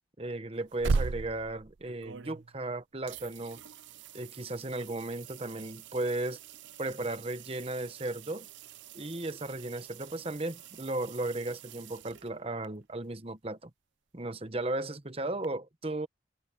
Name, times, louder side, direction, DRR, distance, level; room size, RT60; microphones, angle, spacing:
voice 1, 0.2-3.6 4.1-6.4 6.8-8.5 8.9-13.7 14.1-16.1, right 2 dB, 30° right, 1.0 m, -35 dB
sound 1, 0.5-2.7 3.1-12.7 15.4-15.5, right 4 dB, 85° right, 0.6 m, -40 dB
head